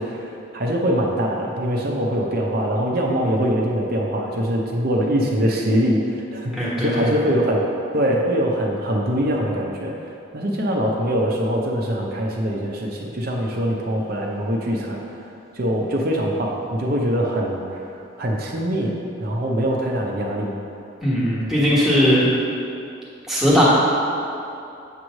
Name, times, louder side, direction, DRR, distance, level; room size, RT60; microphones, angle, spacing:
voice 1, 0.0-7.6 7.9-9.9 10.3-15.0 15.5-18.9 19.2-20.5, equal, 50° right, -1 dB, 0.7 m, -23 dB
voice 2, 6.5-7.1 21.0-22.2 23.3-23.6, equal, ahead, -8 dB, 1.4 m, -18 dB
8.2 x 3.1 x 6.3 m, 2.6 s
head